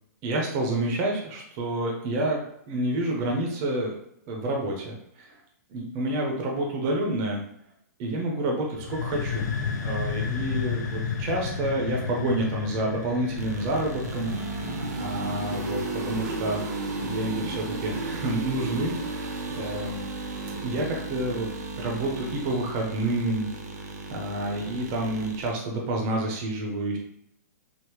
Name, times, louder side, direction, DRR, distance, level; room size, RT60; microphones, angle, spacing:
voice 1, 0.2-2.4 2.7-3.9 4.3-5.3 5.7-7.4 8.0-9.5 9.8-14.7 15.0-16.8 17.0-20.0 20.6-21.5 21.8-23.5 24.1-27.0, right 1 dB, 30° right, 0 dB, 0.6 m, -29 dB
sound 1, 8.7-16.4, left 6 dB, 85° left, 0.5 m, -32 dB
sound 2, 13.3-25.5, right 2 dB, 75° right, 0.7 m, -34 dB
3.4 x 2.0 x 3.0 m, 0.76 s
hypercardioid pair, 155°, 9 cm